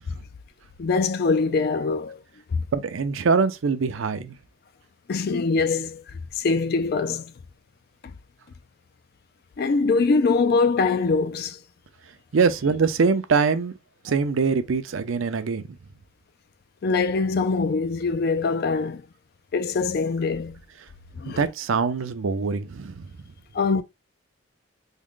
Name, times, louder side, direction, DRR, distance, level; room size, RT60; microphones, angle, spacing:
voice 1, 0.8-2.2 2.5-2.6 5.1-6.0 6.4-7.3 9.6-11.6 16.8-19.0 19.5-20.6 21.2-21.4 23.5-23.8, left 4 dB, 45° left, 0.3 m, -23 dB
voice 2, 2.7-4.3 12.3-13.7 14.0-15.6 21.3-23.0, right 5 dB, 75° right, 0.5 m, -23 dB
3.6 x 2.1 x 3.6 m
head